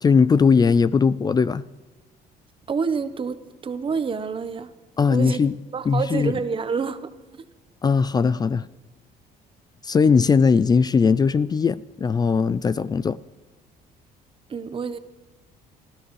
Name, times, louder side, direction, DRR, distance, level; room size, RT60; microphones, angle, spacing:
voice 1, 0.0-1.6 5.0-5.5 5.9-6.3 7.8-8.7 9.8-13.2, left 5 dB, 25° left, 0.3 m, -19 dB
voice 2, 2.7-4.7 5.1-5.4 5.7-7.1 7.4-7.5 14.5-15.0, right 5 dB, 30° right, 1.0 m, -28 dB
26.5 x 13.0 x 3.2 m
cardioid pair, 110°, 17 cm